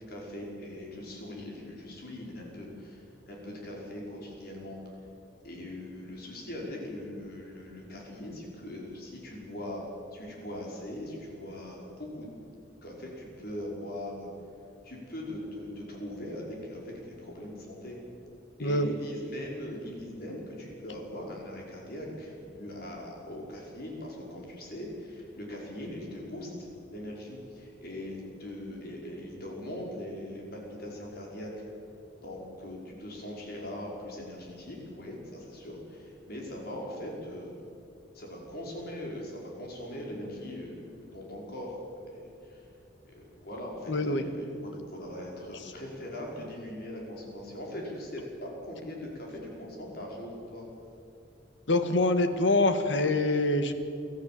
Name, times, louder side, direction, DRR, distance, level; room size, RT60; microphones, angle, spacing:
voice 1, 0.1-4.8 5.4-12.3 12.8-14.3 14.8-18.0 18.6-31.6 32.2-37.6 38.1-42.7 43.0-50.7, left 1 dB, 55° left, -1 dB, 5.4 m, -41 dB
voice 2, 18.6-19.0 43.9-44.2 51.7-53.7, left 2 dB, 75° left, 9 dB, 1.7 m, -25 dB
24.5 x 14.5 x 7.7 m, 2.6 s
head